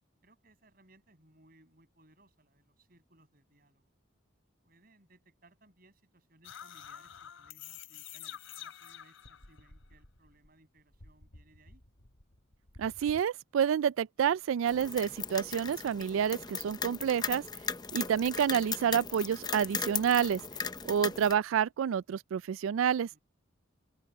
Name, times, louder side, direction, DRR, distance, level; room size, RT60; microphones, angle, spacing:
voice 1, 0.2-3.9 4.6-11.8 23.1-23.2, right 2 dB, 45° right, 7.1 m, -64 dB
sound 1, 6.4-10.5 10.8-13.2, left 8 dB, 80° left, 3.5 m, -49 dB
voice 2, 12.8-17.4 17.9-20.4 20.8-23.1, right 8 dB, 85° right, 0.3 m, -29 dB
sound 2, 14.7-21.3, left 6 dB, 20° left, 0.6 m, -37 dB
open air
head